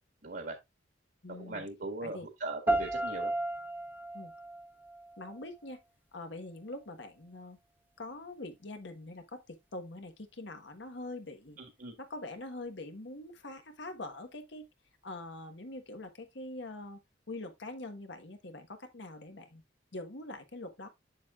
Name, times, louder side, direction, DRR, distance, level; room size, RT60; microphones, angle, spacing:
voice 1, 0.2-0.5 1.3-3.3 11.6-11.9, right 2 dB, 55° right, 1.6 m, -39 dB
voice 2, 1.2-1.6 2.0-2.3 4.1-4.3 5.2-5.8 6.1-7.6 8.0-11.6 12.0-14.7 15.0-17.0 17.3-19.6 19.9-20.9, left 2 dB, 70° left, 1.3 m, -44 dB
sound 1, 2.7-5.7, right 2 dB, 10° right, 1.2 m, -34 dB
7.4 x 7.3 x 2.4 m
head